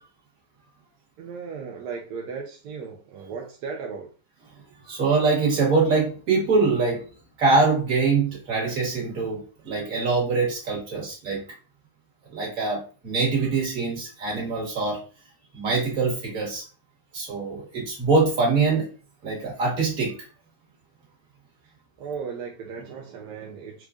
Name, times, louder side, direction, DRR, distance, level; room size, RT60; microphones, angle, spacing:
voice 1, 1.2-4.1 21.6-21.7 22.0-23.9, right 5 dB, 85° right, 0 dB, 1.2 m, -36 dB
voice 2, 4.9-7.0 7.4-11.4 12.3-15.0 15.5-16.6 17.1-18.9 19.2-20.1, right 4 dB, 60° right, -3 dB, 1.8 m, -23 dB
4.4 x 2.4 x 2.4 m, 0.36 s
omnidirectional pair, 1.7 m